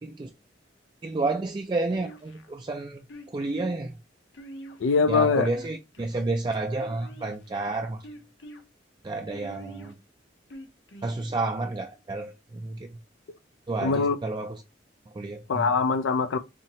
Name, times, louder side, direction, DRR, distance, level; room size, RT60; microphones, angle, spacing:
voice 1, 1.0-3.0 3.3-3.9 5.1-8.0 9.0-9.9 11.0-12.9 13.7-14.6 15.1-15.7, right 2 dB, 25° right, 0.4 m, -30 dB
sound 1, 1.9-2.5 3.1-3.6 4.3-5.1 5.5-6.2 6.8-7.5 8.0-8.6 9.3-9.9 10.5-11.1, right 1 dB, 70° left, 0.8 m, -45 dB
voice 2, 4.8-5.5 13.8-14.2 15.5-16.4, left 4 dB, 85° left, 0.4 m, -23 dB
4.2 x 2.9 x 2.7 m
head